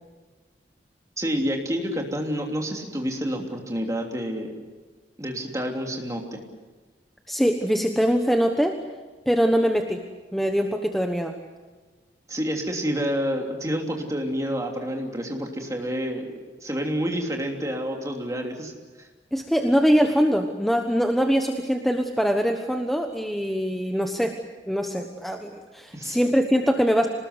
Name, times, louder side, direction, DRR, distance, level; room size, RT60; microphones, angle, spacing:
voice 1, 1.2-4.5 5.2-6.4 12.3-18.7 19.0-19.1 25.9-26.2, equal, 20° right, 2 dB, 3.1 m, -28 dB
voice 2, 7.3-8.8 9.3-10.0 10.3-11.3 19.3-24.3 24.7-27.1, equal, ahead, 4 dB, 1.2 m, -23 dB
26.5 x 19.5 x 8.1 m, 1.3 s
head